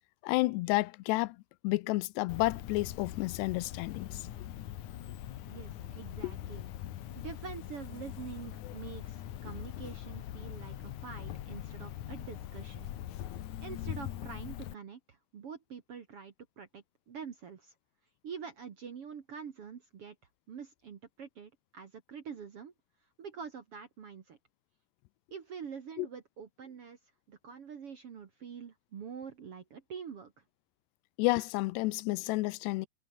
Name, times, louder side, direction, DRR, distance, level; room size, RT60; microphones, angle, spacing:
voice 1, 0.2-1.4 1.6-4.2 6.2-6.3 26.0-26.1 31.2-32.9, left 21 dB, 85° left, 2.8 m, -30 dB
Cricket, 2.3-14.7, left 12 dB, 65° left, 2.2 m, -42 dB
voice 2, 5.5-6.6 7.2-12.9 13.6-17.7 18.2-20.2 20.5-22.7 23.2-24.4 25.3-27.0 27.3-30.3, right 6 dB, 50° right, 1.8 m, -45 dB
omnidirectional pair, 4.8 m